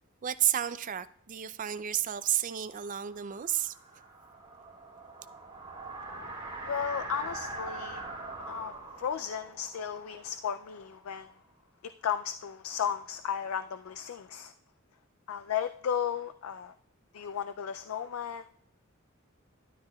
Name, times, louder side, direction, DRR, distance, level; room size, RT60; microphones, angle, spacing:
voice 1, 0.2-3.8, right 11 dB, 40° right, 13 dB, 0.4 m, -31 dB
sound 1, 2.6-11.3, right 2 dB, 20° right, 3.3 m, -43 dB
voice 2, 6.6-8.0 8.4-11.3 11.8-14.5 15.3-16.7 17.1-18.5, left 8 dB, 80° left, 10 dB, 0.4 m, -34 dB
12.5 x 10.5 x 2.3 m, 0.64 s
head